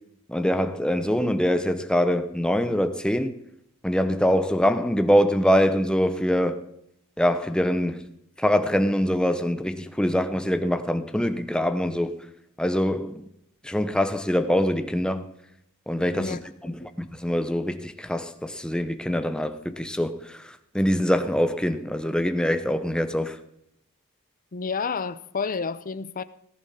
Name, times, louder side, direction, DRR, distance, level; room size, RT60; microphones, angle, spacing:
voice 1, 0.3-3.4 3.8-6.6 7.2-8.1 8.4-12.2 12.6-13.2 13.6-15.3 15.9-16.4 16.6-16.9 17.2-20.2 20.7-23.4, equal, 5° left, 0.8 m, -24 dB
voice 2, 16.1-16.7 24.5-26.2, left 5 dB, 40° left, 0.6 m, -30 dB
18.5 x 11.0 x 4.2 m
head